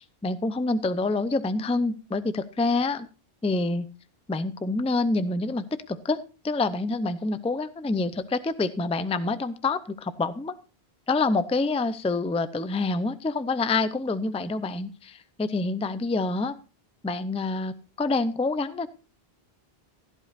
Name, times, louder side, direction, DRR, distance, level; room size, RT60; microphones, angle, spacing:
voice 1, 0.0-3.1 3.4-3.9 4.3-10.6 11.1-16.6 17.0-18.9, left 3 dB, 10° left, 13 dB, 0.4 m, -27 dB
16.5 x 11.0 x 2.5 m, 0.33 s
omnidirectional pair, 1.0 m